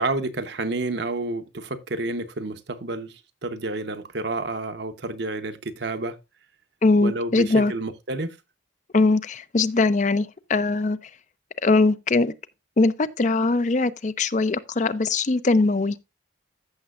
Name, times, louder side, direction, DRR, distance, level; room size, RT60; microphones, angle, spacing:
voice 1, 0.0-6.2 7.0-8.4, right 2 dB, 60° right, 0.9 m, -30 dB
voice 2, 6.8-7.7 8.9-11.1 11.6-12.3 12.8-16.0, left 3 dB, 40° left, 0.5 m, -21 dB
14.5 x 6.7 x 2.4 m
head